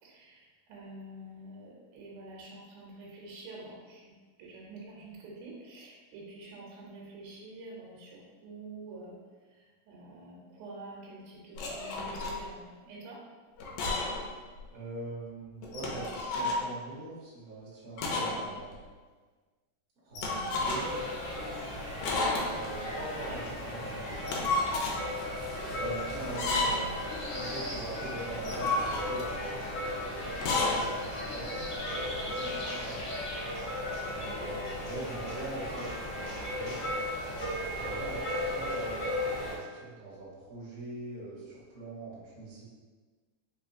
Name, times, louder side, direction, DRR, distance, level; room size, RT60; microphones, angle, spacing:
voice 1, 0.0-9.2 9.5-13.2 32.4-32.8 34.1-34.4, right 2 dB, 80° right, -4 dB, 2.2 m, -47 dB
sound 1, 11.6-12.4 13.6-14.3 14.6-14.7 15.6-16.6 18.0-18.4 18.7-18.8 20.2-21.0 22.0-22.7 24.1-25.0 26.3-27.0 28.3-29.3 30.3-30.8, left 2 dB, 80° left, 2.0 m, -31 dB
voice 2, 14.7-18.8 20.0-20.9 22.5-24.5 25.7-27.0 27.3-31.5 31.9-33.0 34.1-36.8 37.7-39.0 39.3-42.6, right 2 dB, 50° right, -8 dB, 1.0 m, -42 dB
sound 2, 20.6-39.6, left 1 dB, 60° left, 1.2 m, -36 dB
4.9 x 3.1 x 2.6 m, 1.4 s
omnidirectional pair, 3.9 m